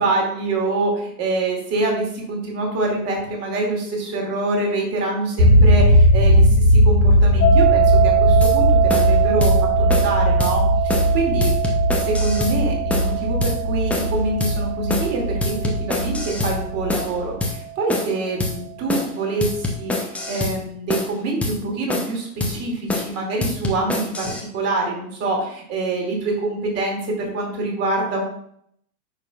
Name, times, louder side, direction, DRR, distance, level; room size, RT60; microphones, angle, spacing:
voice 1, 0.0-11.5 12.0-28.2, right 2 dB, 30° right, 0 dB, 2.5 m, -25 dB
sound 1, 5.4-17.3, equal, 65° right, 2.5 m, -18 dB
sound 2, 7.4-18.3, right 10 dB, 25° left, 1.3 m, -24 dB
sound 3, 8.4-8.6 8.9-9.1 9.4-9.6 9.9-10.1 10.4-10.6 10.9-11.1 11.4-12.6 12.9-13.1 13.4-13.6 13.9-14.1 14.4-14.6 14.9-15.1 15.4-16.6 16.9-17.1 17.4-17.6 17.9-18.1 18.4-18.6 18.9-19.1 19.4-20.6 20.9-21.1 21.4-21.6 21.9-22.1 22.4-22.6 22.9-23.1 23.4-24.4, left 2 dB, 5° left, 0.5 m, -25 dB
9.7 x 5.9 x 2.4 m, 0.68 s
hypercardioid pair, 110°, 48 cm